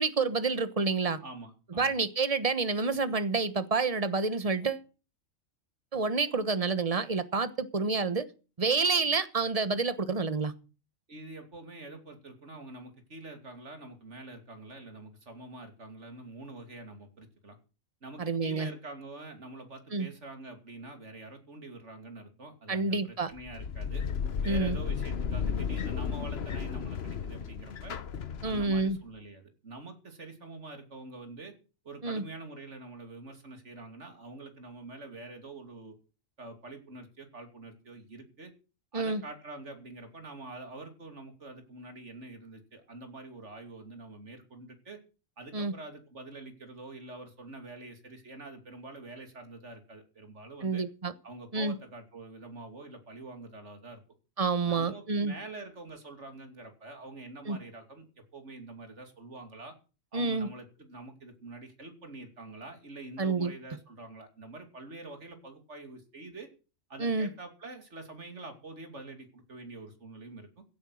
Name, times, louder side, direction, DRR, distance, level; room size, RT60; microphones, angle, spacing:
voice 1, 0.0-1.2 1.8-4.8 5.9-8.3 8.6-10.5 18.2-18.7 19.9-20.1 22.7-23.3 24.4-24.8 28.4-29.0 32.0-32.2 38.9-39.2 45.5-45.7 50.6-51.1 51.5-51.7 54.4-55.3 57.5-57.6 60.1-60.5 63.2-63.5 67.0-67.3, right 4 dB, 30° right, 1.1 m, -28 dB
voice 2, 1.2-1.9 11.1-17.6 18.0-24.1 24.4-27.9 28.4-31.5 31.8-36.0 36.4-38.5 38.9-45.0 45.4-50.9 51.2-54.0 54.6-59.7 60.1-66.5 66.9-70.6, right 2 dB, 60° right, 3.0 m, -46 dB
sound 1, 23.4-29.0, left 6 dB, 55° left, 1.2 m, -34 dB
16.0 x 9.0 x 6.3 m
omnidirectional pair, 1.4 m